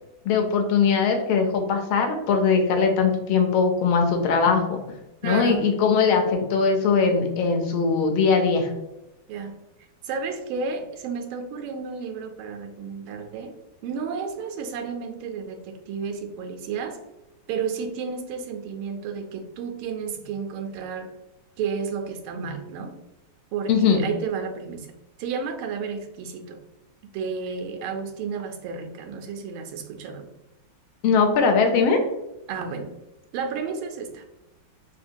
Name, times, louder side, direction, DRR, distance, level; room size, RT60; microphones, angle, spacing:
voice 1, 0.2-4.8 5.2-8.7 23.7-24.0 31.0-32.0, left 5 dB, 85° left, 4 dB, 1.5 m, -20 dB
voice 2, 5.2-5.7 9.3-9.6 10.0-13.5 13.8-17.0 17.5-21.1 21.6-23.0 23.5-24.9 25.2-26.6 27.1-30.2 32.5-32.9 33.3-34.2, right 5 dB, 85° right, 5 dB, 1.4 m, -32 dB
3.7 x 2.8 x 2.6 m, 0.94 s
omnidirectional pair, 2.2 m